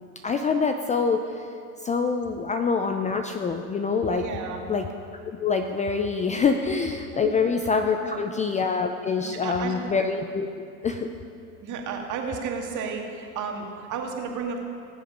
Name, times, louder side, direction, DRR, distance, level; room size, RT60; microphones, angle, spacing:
voice 1, 0.2-1.5 1.8-4.2 4.7-4.9 5.2-10.5 10.8-11.1, left 5 dB, 15° left, 6 dB, 0.5 m, -25 dB
voice 2, 4.1-4.6 7.1-7.4 7.8-8.2 9.2-9.9 11.6-14.6, right 5 dB, 45° right, 2 dB, 2.2 m, -33 dB
19.5 x 7.6 x 5.4 m, 2.5 s
hypercardioid pair, 100°, 43 cm